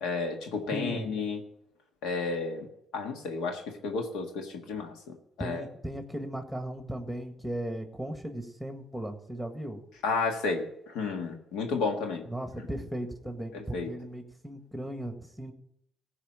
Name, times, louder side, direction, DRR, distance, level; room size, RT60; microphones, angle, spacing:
voice 1, 0.0-1.4 2.0-2.7 2.9-5.6 10.0-12.3 13.5-13.9, left 4 dB, 85° left, 4 dB, 1.6 m, -32 dB
voice 2, 0.7-1.1 5.4-9.8 12.3-15.5, right 1 dB, ahead, 6 dB, 1.7 m, -37 dB
15.0 x 5.0 x 8.7 m, 0.76 s
cardioid pair, 80°, 0 cm